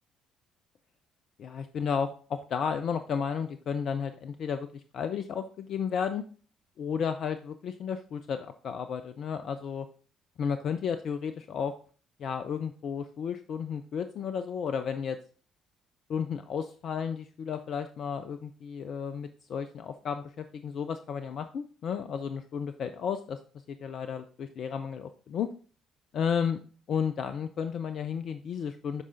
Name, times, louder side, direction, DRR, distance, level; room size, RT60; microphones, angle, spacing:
voice 1, 1.4-6.2 6.8-9.9 10.4-11.7 12.2-15.2 16.1-23.4 23.7-25.5 26.1-26.6 26.9-29.0, left 7 dB, 55° left, 10 dB, 0.5 m, -33 dB
12.5 x 4.8 x 2.6 m, 0.41 s
hypercardioid pair, 50°, 0 cm